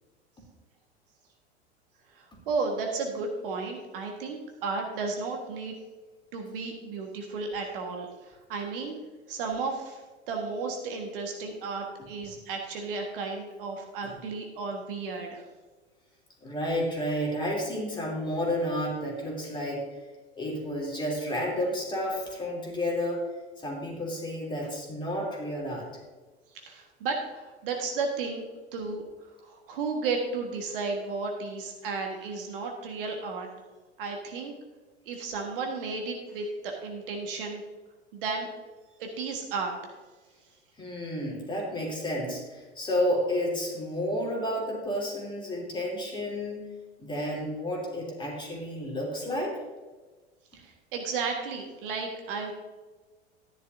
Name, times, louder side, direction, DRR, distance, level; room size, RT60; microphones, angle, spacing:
voice 1, 2.1-5.7 6.3-9.0 9.3-15.4 26.5-28.4 28.7-33.5 34.0-34.5 35.0-37.6 38.1-38.5 39.0-39.9 50.5-52.5, right 4 dB, 55° right, 2 dB, 1.6 m, -33 dB
voice 2, 16.4-19.9 20.3-23.2 23.6-25.9 40.8-46.6 47.0-49.6, equal, 15° left, -2 dB, 3.1 m, -31 dB
13.0 x 10.5 x 2.7 m, 1.3 s
figure-of-eight pair, 85°, 33 cm